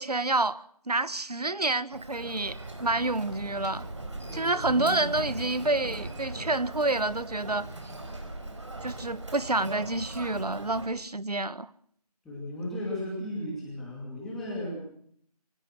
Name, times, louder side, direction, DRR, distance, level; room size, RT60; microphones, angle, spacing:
voice 1, 0.0-3.8 4.3-7.7 8.8-11.7, right 2 dB, 80° right, 1.4 m, -28 dB
Human voice, 1.9-10.9, right 2 dB, 50° right, 4.7 m, -39 dB
voice 2, 4.3-5.1 6.3-6.5 12.2-14.8, left 1 dB, ahead, 2.5 m, -35 dB
23.0 x 19.0 x 6.0 m
figure-of-eight pair, 170°, 20 cm